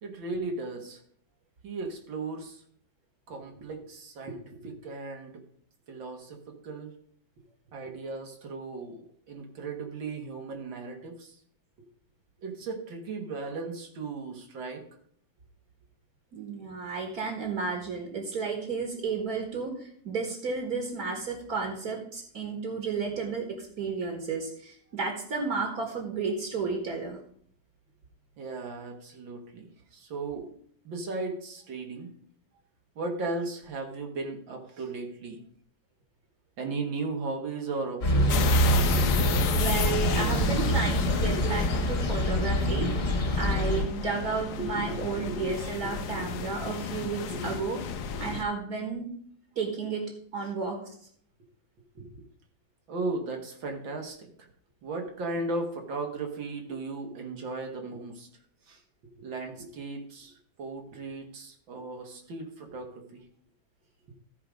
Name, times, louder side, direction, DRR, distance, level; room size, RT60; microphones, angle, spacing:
voice 1, 0.0-1.0 1.6-2.6 3.3-5.4 5.9-6.9 7.7-11.4 12.4-14.8 28.4-30.5 30.9-32.1 33.0-35.4 36.6-39.2 44.6-45.0 45.3-45.4 45.8-46.2 47.3-47.5 48.1-48.3 52.0-52.3 52.9-54.3 54.8-58.3 58.7-58.8 59.2-63.2, right 3 dB, 75° right, 2 dB, 2.2 m, -36 dB
voice 2, 16.3-27.2 39.5-42.9 43.4-47.8 48.2-49.1 49.6-50.1 50.3-50.8, right 4 dB, 50° right, 1 dB, 2.1 m, -32 dB
sound 1, 38.0-43.8, equal, 45° left, 1.8 m, -25 dB
sound 2, 38.3-48.4, left 7 dB, 65° left, 1.2 m, -34 dB
14.0 x 4.9 x 5.1 m, 0.63 s
omnidirectional pair, 2.1 m